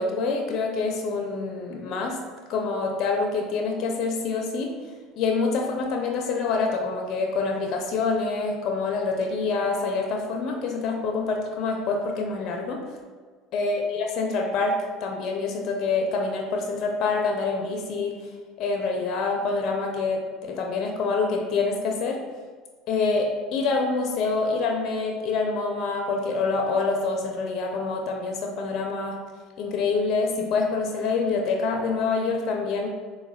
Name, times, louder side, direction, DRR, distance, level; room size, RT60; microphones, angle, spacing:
voice 1, 0.0-2.2 2.5-4.7 5.2-12.8 13.5-18.2 18.6-22.2 22.9-29.2 29.6-32.9, left 4 dB, 55° left, 1 dB, 0.4 m, -26 dB
3.9 x 2.1 x 2.2 m, 1.5 s
hypercardioid pair, 85°, 0 cm